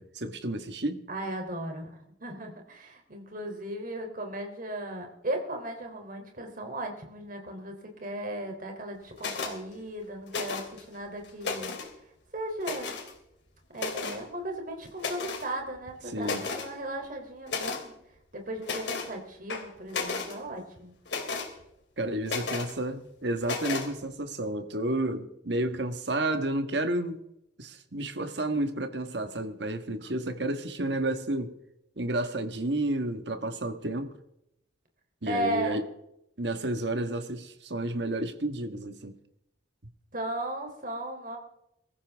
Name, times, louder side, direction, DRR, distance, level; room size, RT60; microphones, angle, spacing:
voice 1, 0.0-1.0 16.1-16.4 22.0-27.2 27.6-31.5 32.0-34.1 35.2-35.8 36.4-39.1, right 1 dB, 65° right, 1.6 m, -31 dB
voice 2, 1.1-11.7 12.3-12.9 13.7-17.9 18.3-20.9 35.3-35.8 40.1-41.4, right 1 dB, 50° right, 3.5 m, -36 dB
sound 1, 9.2-9.6 10.3-10.8 11.2-11.9 12.6-13.1 13.8-14.2 15.0-15.5 15.9-16.0 16.2-16.7 17.5-17.8 18.6-19.1 19.5-20.3 21.1-21.5 22.3-22.7 23.4-23.9, left 4 dB, 65° left, 3.0 m, -33 dB
23.0 x 14.5 x 3.6 m
head